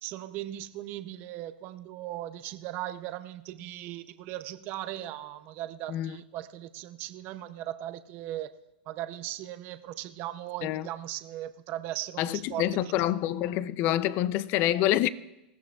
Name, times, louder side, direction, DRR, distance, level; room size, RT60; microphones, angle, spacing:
voice 1, 0.0-8.5 8.9-13.1, right 13 dB, 40° right, 0.6 m, -38 dB
voice 2, 12.2-15.1, left 13 dB, 40° left, 0.5 m, -27 dB
20.0 x 15.0 x 2.4 m
hypercardioid pair, 135°, 5 cm